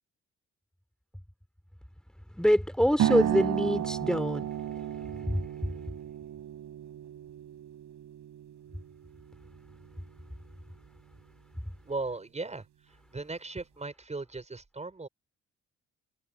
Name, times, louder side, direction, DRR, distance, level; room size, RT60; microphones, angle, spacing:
voice 1, 2.3-5.8, equal, ahead, 4.0 m, -27 dB
sound 1, 3.0-10.1, right 11 dB, 75° right, 7.6 m, -34 dB
voice 2, 11.8-12.7 13.1-15.1, right 3 dB, 20° right, 5.3 m, -37 dB
cardioid pair, 90°, 30 cm